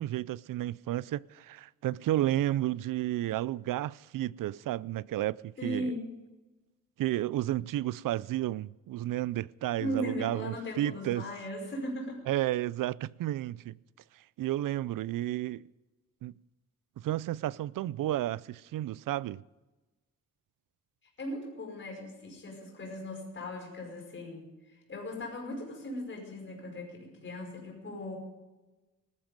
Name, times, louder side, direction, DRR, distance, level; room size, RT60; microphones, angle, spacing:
voice 1, 0.0-5.9 7.0-11.2 12.3-13.8 14.1-15.6 16.2-16.3 17.0-19.4, right 14 dB, 75° right, 0.5 m, -32 dB
voice 2, 5.6-6.1 9.8-12.2 21.2-28.2, equal, 35° left, 5.4 m, -38 dB
20.0 x 13.5 x 5.2 m
wide cardioid pair, 175°, 33 cm